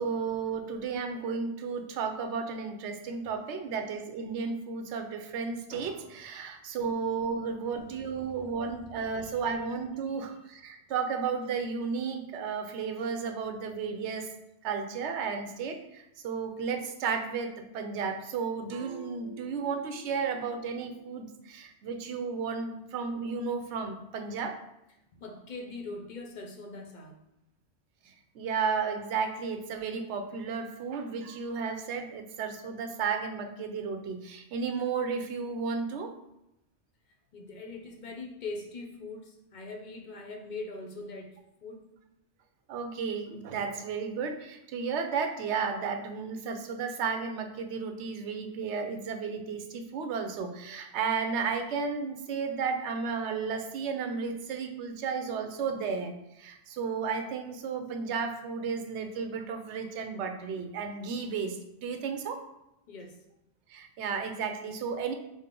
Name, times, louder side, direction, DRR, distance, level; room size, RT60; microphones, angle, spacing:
voice 1, 0.0-14.3 14.6-24.6 28.0-36.1 42.7-62.4 63.7-65.1, right 5 dB, 80° right, 6 dB, 0.9 m, -33 dB
voice 2, 7.8-8.4 9.1-9.2 25.1-27.2 37.3-41.9 62.9-63.2, left 3 dB, 50° left, 2 dB, 0.7 m, -42 dB
5.2 x 2.1 x 3.7 m, 0.86 s
omnidirectional pair, 1.2 m